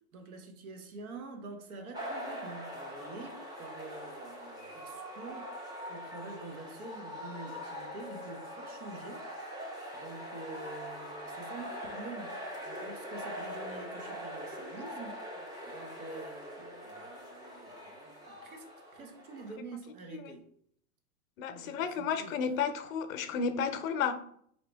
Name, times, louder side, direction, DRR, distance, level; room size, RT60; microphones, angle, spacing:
voice 1, 0.1-5.5 5.9-9.3 9.9-20.4 21.5-22.6, right 3 dB, 70° right, 1.1 m, -47 dB
Crowd Cheering - Ambience and Cheering, 1.9-19.5, equal, 10° right, 0.7 m, -43 dB
voice 2, 21.4-24.1, left 6 dB, 60° left, 0.7 m, -32 dB
4.1 x 2.8 x 3.4 m
hypercardioid pair, 125°, 45 cm